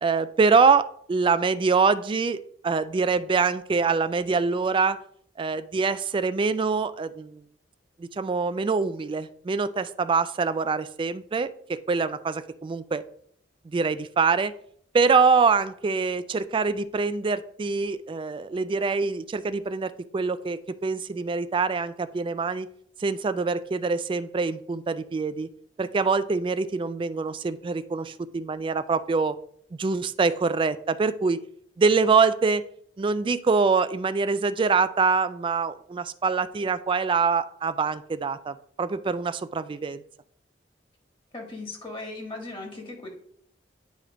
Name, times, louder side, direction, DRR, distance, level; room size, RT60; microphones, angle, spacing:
voice 1, 0.0-5.0 5.4-7.4 8.0-13.0 13.6-14.5 14.9-22.7 23.0-25.5 25.8-29.4 29.7-31.4 31.8-32.6 33.0-40.0, right 4 dB, 30° right, 13 dB, 0.3 m, -24 dB
voice 2, 41.3-43.1, left 2 dB, 30° left, 1 dB, 1.6 m, -37 dB
9.2 x 3.1 x 4.9 m, 0.63 s
head